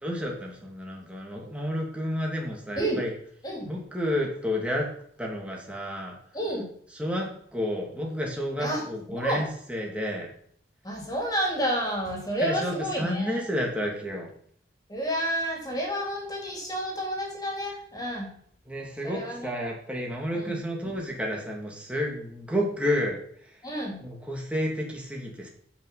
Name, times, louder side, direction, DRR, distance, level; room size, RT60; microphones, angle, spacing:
voice 1, 0.0-3.1 3.7-4.9 5.2-6.1 7.0-10.3 12.4-14.3 18.7-23.6 24.0-25.5, equal, 5° right, -1 dB, 2.5 m, -31 dB
voice 2, 6.3-6.7 8.6-9.5 10.8-13.5 14.9-18.3 19.0-19.5 20.3-20.6 23.6-24.0, equal, 20° left, 0 dB, 3.5 m, -30 dB
14.0 x 6.0 x 5.7 m, 0.62 s
head